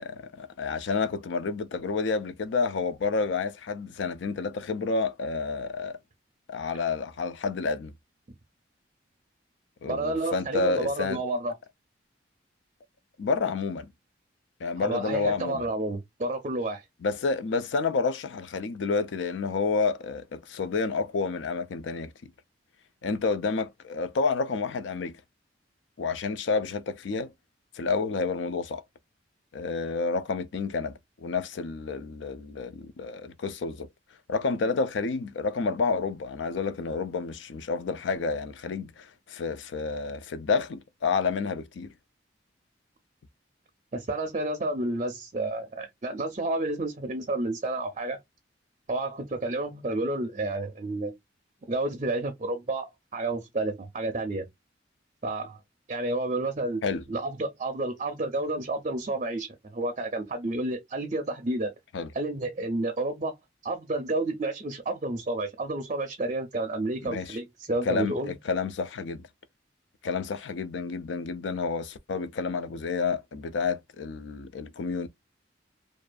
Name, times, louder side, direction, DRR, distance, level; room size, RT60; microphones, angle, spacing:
voice 1, 0.0-6.0 6.5-7.9 9.8-11.2 13.2-13.9 14.6-15.7 17.0-22.3 23.0-25.2 26.0-27.3 27.7-28.8 29.5-33.9 34.3-41.9 56.8-57.0 61.9-62.1 67.0-67.4 67.8-69.3 70.0-75.1, left 4 dB, 70° left, 0.4 m, -29 dB
voice 2, 9.9-11.5 14.8-16.8 43.9-48.2 48.9-51.1 51.7-54.5 55.2-55.6 55.9-56.8 57.1-61.7 62.1-63.4 63.6-68.4, right 2 dB, 35° right, 0.5 m, -30 dB
2.5 x 2.4 x 2.2 m
head